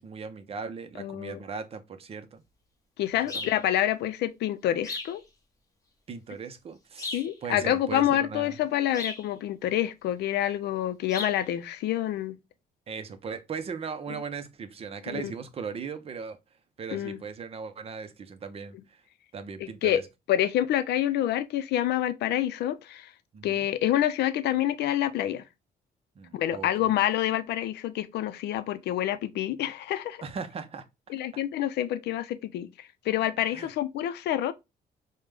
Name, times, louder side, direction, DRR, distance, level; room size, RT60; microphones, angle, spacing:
voice 1, 0.0-2.4 3.3-3.5 6.1-8.6 12.9-16.4 16.8-19.0 19.3-20.0 23.3-23.7 26.2-26.9 30.2-30.9 31.3-31.4 33.5-33.7, right 5 dB, 35° right, 0.5 m, -38 dB
voice 2, 1.0-1.4 3.0-5.2 7.1-12.4 15.1-15.3 16.9-17.2 19.6-20.0 20.3-23.1 23.4-25.4 26.3-30.2 31.1-34.5, left 12 dB, 90° left, 0.5 m, -27 dB
sound 1, 3.3-3.6 4.8-5.2 7.0-7.3 8.9-9.3 11.1-11.4, left 3 dB, 20° left, 0.9 m, -36 dB
5.0 x 2.1 x 3.2 m
cardioid pair, 145°, 17 cm